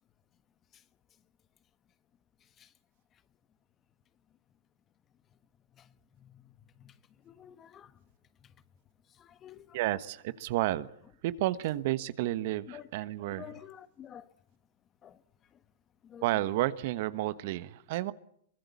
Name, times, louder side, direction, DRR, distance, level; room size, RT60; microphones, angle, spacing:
voice 1, 7.3-7.9 9.2-9.8 12.7-12.9 13.3-14.2 15.0-15.2 16.1-16.2, left 10 dB, 25° left, 1.3 m, -49 dB
voice 2, 9.7-10.9 11.2-13.6 16.2-18.1, right 15 dB, 55° right, 1.3 m, -31 dB
23.5 x 23.0 x 8.5 m
hypercardioid pair, 120°, 0 cm